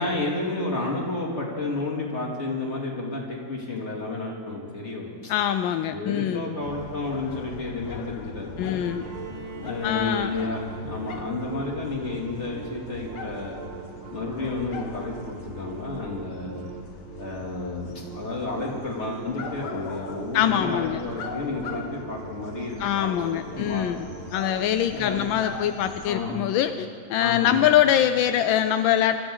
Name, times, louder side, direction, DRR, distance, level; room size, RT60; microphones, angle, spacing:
voice 1, 0.0-5.3 5.9-8.8 9.6-13.6 14.1-16.7 17.2-23.8 24.9-25.2 26.0-26.3 27.2-27.5, left 2 dB, 35° left, -3 dB, 3.0 m, -31 dB
voice 2, 5.3-6.4 8.6-9.0 9.8-10.4 20.3-21.0 22.8-24.1 24.3-29.2, left 10 dB, 85° left, 9 dB, 1.3 m, -23 dB
Сity in the afternoon - downtown area, 6.6-26.1, left 6 dB, 65° left, 1.4 m, -41 dB
sound 1, 8.8-24.8, right 11 dB, 80° right, 1.4 m, -43 dB
Bowed string instrument, 9.0-12.8, right 1 dB, 40° right, 1.6 m, -44 dB
24.5 x 13.5 x 3.9 m, 2.1 s
omnidirectional pair, 2.1 m